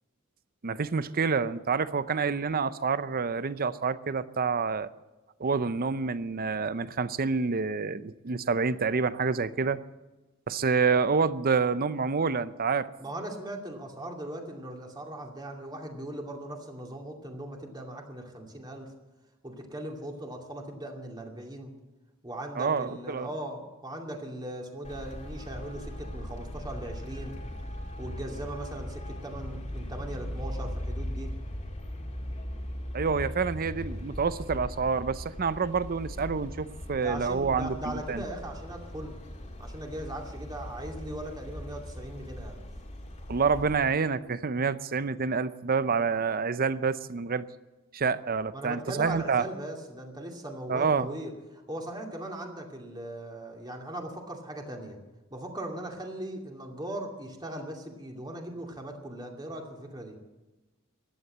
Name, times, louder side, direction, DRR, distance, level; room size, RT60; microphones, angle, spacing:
voice 1, 0.6-4.9 5.4-9.8 10.5-12.9 22.6-23.3 32.9-38.2 43.3-47.5 47.9-49.5 50.7-51.1, right 5 dB, 45° right, 15 dB, 0.6 m, -28 dB
voice 2, 13.0-18.9 19.4-21.7 22.2-27.4 28.0-31.3 36.9-39.1 39.6-42.6 48.5-55.0 55.3-60.1, right 1 dB, 20° right, 1 dB, 2.5 m, -39 dB
Traffic noise roadway noise, 24.8-43.8, left 1 dB, 35° left, 2.4 m, -39 dB
15.0 x 11.0 x 7.9 m, 1.1 s
head